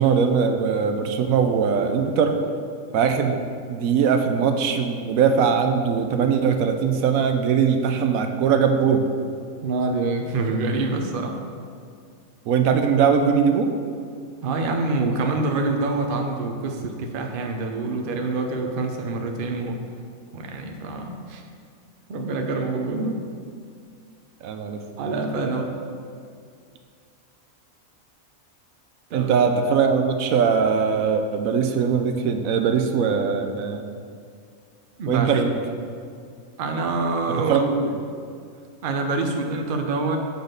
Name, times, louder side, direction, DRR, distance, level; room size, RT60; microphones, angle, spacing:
voice 1, 0.0-2.4 2.9-3.4 3.7-9.0 12.5-13.7 24.4-24.8 29.1-33.8 35.1-35.5 37.5-37.9, right 6 dB, 80° right, 6 dB, 1.0 m, -21 dB
voice 2, 9.6-11.4 14.4-19.8 20.3-21.4 22.1-23.2 25.0-25.7 29.1-29.3 35.0-35.4 36.6-37.8 38.8-40.2, right 3 dB, 50° right, 3 dB, 0.7 m, -26 dB
7.1 x 3.9 x 6.5 m, 2.3 s
omnidirectional pair, 1.4 m